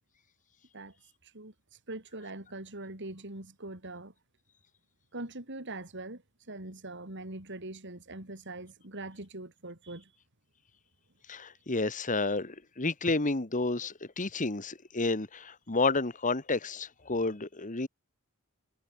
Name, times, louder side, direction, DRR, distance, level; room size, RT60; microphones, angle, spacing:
voice 1, 1.2-1.5 1.9-4.1 5.1-6.2 6.5-10.1, right 2 dB, 55° right, 4.4 m, -42 dB
voice 2, 11.3-17.9, left 3 dB, 35° left, 1.7 m, -30 dB
head